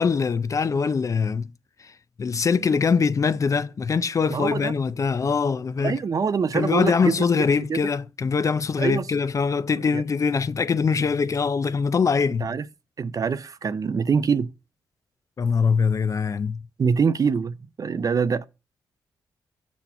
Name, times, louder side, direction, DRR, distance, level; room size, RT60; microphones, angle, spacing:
voice 1, 0.0-1.5 1.8-1.9 2.2-6.0 6.5-12.5 15.4-16.6, left 5 dB, 40° left, 0.4 m, -23 dB
voice 2, 4.3-4.7 5.8-7.8 8.8-9.0 9.9-10.0 12.4-12.6 13.0-14.5 16.8-18.4, right 6 dB, 45° right, 0.5 m, -24 dB
5.8 x 4.2 x 5.5 m
cardioid pair, 65°, 8 cm